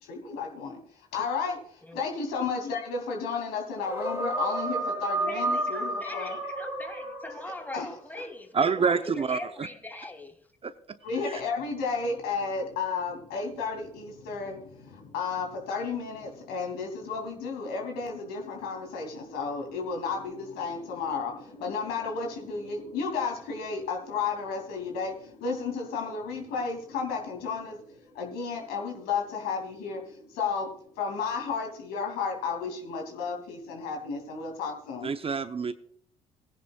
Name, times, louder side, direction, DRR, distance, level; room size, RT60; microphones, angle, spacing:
voice 1, 0.0-6.4 7.7-7.9 11.0-35.1, left 5 dB, 75° left, 2 dB, 2.8 m, -33 dB
sound 1, 3.8-7.9, right 2 dB, 15° right, 2.4 m, -31 dB
voice 2, 5.3-10.5, left 1 dB, 10° left, 4 dB, 3.2 m, -41 dB
voice 3, 8.5-9.7 10.6-10.7 35.0-35.7, right 5 dB, 35° right, 10 dB, 0.8 m, -27 dB
18.5 x 10.5 x 2.4 m, 0.63 s
hypercardioid pair, 50°, 17 cm